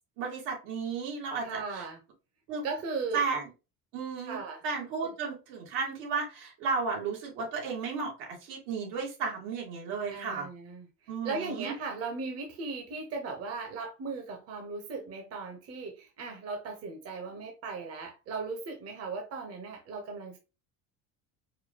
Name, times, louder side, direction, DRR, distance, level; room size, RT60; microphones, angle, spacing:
voice 1, 0.2-1.8 2.5-2.6 3.1-3.4 3.9-4.4 4.6-10.5 11.1-11.7, right 5 dB, 85° right, -1 dB, 1.7 m, -33 dB
voice 2, 1.4-2.0 2.6-3.2 4.3-4.6 5.0-5.1 10.1-20.4, right 4 dB, 50° right, 3 dB, 1.0 m, -37 dB
4.8 x 2.3 x 2.9 m, 0.29 s
cardioid pair, 130°, 33 cm